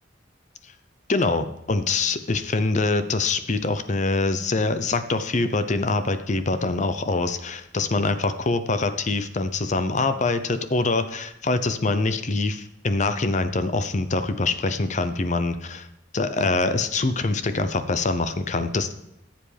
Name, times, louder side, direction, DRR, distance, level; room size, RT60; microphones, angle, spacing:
voice 1, 1.1-15.9 16.1-18.9, left 3 dB, 40° left, 10 dB, 0.7 m, -24 dB
14.5 x 7.7 x 3.4 m, 0.85 s
head